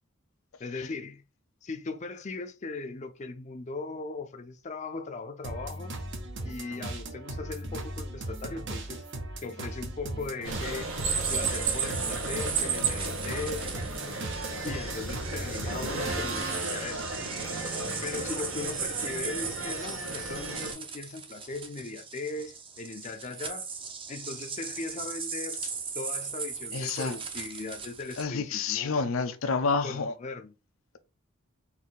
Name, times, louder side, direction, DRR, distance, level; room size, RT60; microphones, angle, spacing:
voice 1, 0.6-1.2 1.6-5.9 6.4-9.0 9.4-10.9 11.3-13.7 14.6-17.1 18.0-23.7 24.1-25.6 25.9-29.4 29.8-30.5, left 3 dB, 35° left, 0.5 m, -38 dB
sound 1, 5.4-16.6 17.0-18.4, right 2 dB, 60° right, 0.8 m, -38 dB
sound 2, 10.4-20.7, right 4 dB, 80° right, 1.3 m, -34 dB
sound 3, 11.2-28.2, right 5 dB, 25° right, 0.6 m, -38 dB
voice 2, 26.7-27.2 28.2-30.1, left 4 dB, 85° left, 0.6 m, -29 dB
4.1 x 2.7 x 3.8 m
head